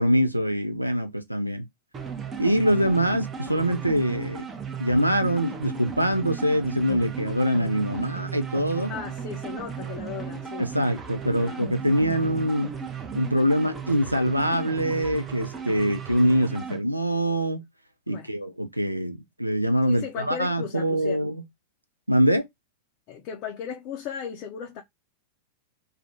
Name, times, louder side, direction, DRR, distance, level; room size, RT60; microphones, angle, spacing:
voice 1, 0.0-1.6 2.4-4.5 4.8-8.9 10.6-12.7 13.1-17.6 18.1-21.4 22.1-22.5, equal, 90° right, 0.3 m, -24 dB
sound 1, 1.9-16.8, right 6 dB, 20° right, 0.5 m, -35 dB
voice 2, 8.9-10.7 11.4-11.7 18.1-18.3 19.9-21.3 23.1-24.8, left 8 dB, 40° left, 0.4 m, -36 dB
2.4 x 2.1 x 2.7 m
figure-of-eight pair, 90°, 0 cm